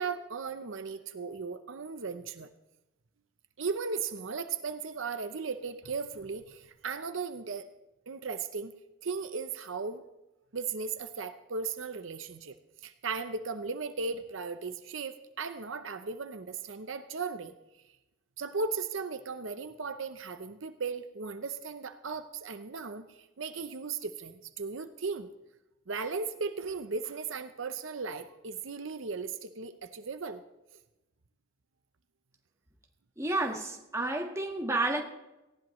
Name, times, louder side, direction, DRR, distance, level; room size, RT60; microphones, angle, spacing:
voice 1, 0.0-2.5 3.6-7.7 8.1-8.7 9.0-10.0 10.5-12.6 12.8-17.5 18.4-25.3 25.9-30.4, right 4 dB, 65° right, 9 dB, 0.7 m, -36 dB
voice 2, 33.2-35.0, right 2 dB, 15° right, 1 dB, 1.6 m, -30 dB
18.5 x 15.5 x 3.1 m, 0.98 s
head